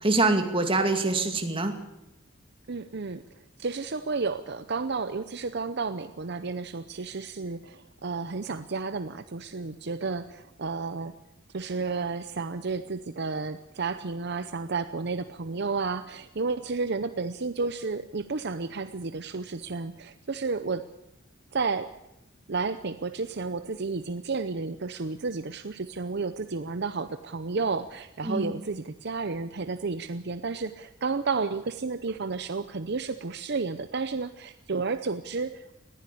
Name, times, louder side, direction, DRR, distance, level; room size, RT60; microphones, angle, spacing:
voice 1, 0.0-1.7 28.2-28.5, right 2 dB, 25° right, 5 dB, 2.3 m, -24 dB
voice 2, 2.7-3.2 3.6-11.1 11.5-20.9 21.5-21.9 22.5-35.7, right 4 dB, 60° right, 11 dB, 0.7 m, -32 dB
20.5 x 15.0 x 8.5 m, 0.85 s
head